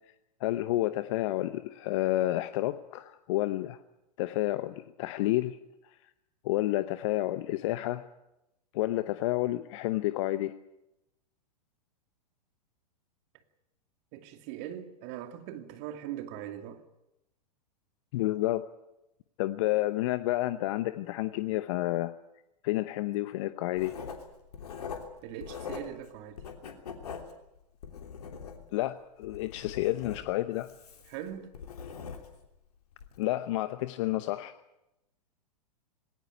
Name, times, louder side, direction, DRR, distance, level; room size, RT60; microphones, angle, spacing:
voice 1, 0.4-3.8 4.2-5.6 6.4-8.0 8.7-10.5 18.1-18.6 19.4-22.1 22.6-23.9 28.7-30.7 33.2-34.5, left 16 dB, 45° left, 0.9 m, -30 dB
voice 2, 14.1-16.8 25.2-26.4 31.1-31.6, right 11 dB, 40° right, 2.4 m, -41 dB
Writing, 23.7-26.1 26.4-28.8 29.2-32.5 32.9-33.2, left 6 dB, 65° left, 3.2 m, -42 dB
19.5 x 18.5 x 9.5 m
figure-of-eight pair, 105°, 21 cm